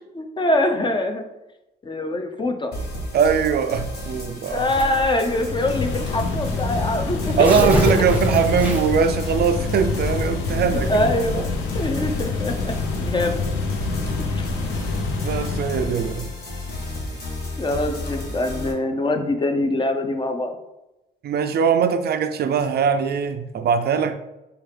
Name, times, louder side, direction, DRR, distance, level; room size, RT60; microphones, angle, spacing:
voice 1, 0.1-1.3 1.8-2.7 4.5-7.5 10.5-10.6 10.9-11.5 11.7-12.7 13.0-13.4 14.3-14.5 17.6-20.6, left 1 dB, 25° left, 6 dB, 0.5 m, -24 dB
sound 1, 2.7-18.7, left 1 dB, 55° left, 1.3 m, -32 dB
voice 2, 3.1-4.6 7.4-11.1 11.3-11.4 15.2-16.3 21.2-24.1, right 6 dB, 55° right, 8 dB, 0.4 m, -21 dB
Tearing, 4.7-5.1 6.0-6.1 6.4-6.5 7.1-9.1, right 1 dB, 5° right, 0.8 m, -24 dB
sound 2, 5.3-16.1, left 4 dB, 85° left, 0.6 m, -27 dB
4.6 x 2.4 x 3.3 m, 0.94 s
cardioid pair, 90°, 20 cm